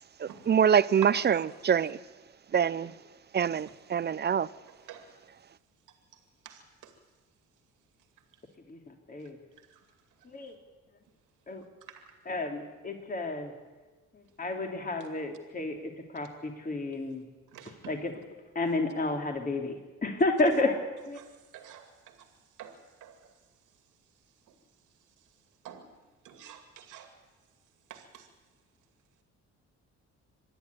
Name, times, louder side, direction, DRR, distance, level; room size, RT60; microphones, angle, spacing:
voice 1, 0.2-2.0 2.5-2.9 3.3-4.5, right 8 dB, 35° right, 0.6 m, -25 dB
voice 2, 12.3-13.5 14.4-15.8 16.1-17.2 17.9-18.1 18.5-19.7 20.0-20.8 21.1-21.2, left 2 dB, 30° left, 3.0 m, -30 dB
voice 3, 17.5-17.9 21.2-21.3 21.5-21.9 22.6-22.7 23.0-23.1 25.6-25.9 26.2-27.1 27.9-28.3, right 10 dB, 85° right, 2.3 m, -45 dB
25.0 x 11.0 x 9.6 m
cardioid pair, 90°, 30 cm